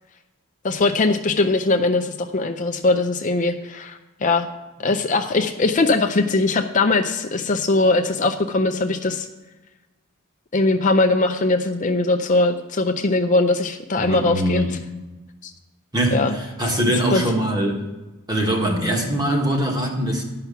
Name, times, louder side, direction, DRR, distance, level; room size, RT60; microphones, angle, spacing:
voice 1, 0.6-4.5 4.8-9.3 10.5-14.8 15.4-15.5 16.1-16.3 17.1-17.2, left 3 dB, 40° left, 6 dB, 0.5 m, -20 dB
voice 2, 14.0-14.7 15.9-17.8 18.3-20.2, right 1 dB, 20° right, 0 dB, 1.7 m, -22 dB
10.5 x 5.8 x 7.0 m, 1.1 s
head